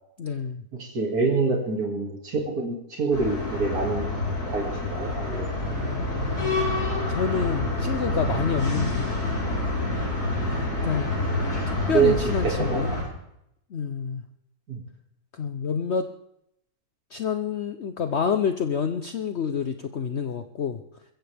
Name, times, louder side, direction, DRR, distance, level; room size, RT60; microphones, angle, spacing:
voice 1, 0.2-0.6 6.4-9.3 10.4-10.5 10.8-11.1 11.9-13.0 13.7-14.2 15.3-16.1 17.1-20.8, left 6 dB, 55° left, 8 dB, 0.9 m, -28 dB
voice 2, 0.8-4.1 4.5-5.5 11.9-12.2 12.4-13.0 14.7-14.8, right 4 dB, 70° right, 0 dB, 2.9 m, -26 dB
sound 1, 3.1-13.0, left 2 dB, 85° left, 5.8 m, -27 dB
22.5 x 15.0 x 3.5 m, 0.78 s
omnidirectional pair, 1.6 m